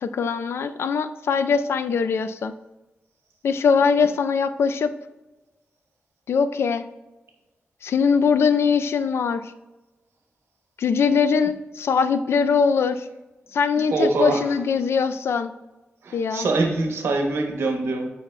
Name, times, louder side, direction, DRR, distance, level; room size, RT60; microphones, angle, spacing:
voice 1, 0.0-2.5 3.4-4.9 6.3-6.8 7.8-9.5 10.8-13.1 13.5-15.5 16.1-16.5, left 5 dB, 80° left, 11 dB, 0.3 m, -21 dB
voice 2, 13.9-14.4 16.0-18.1, right 2 dB, 85° right, 3 dB, 1.0 m, -23 dB
8.0 x 5.6 x 2.2 m, 1.1 s
wide cardioid pair, 135°, 4 cm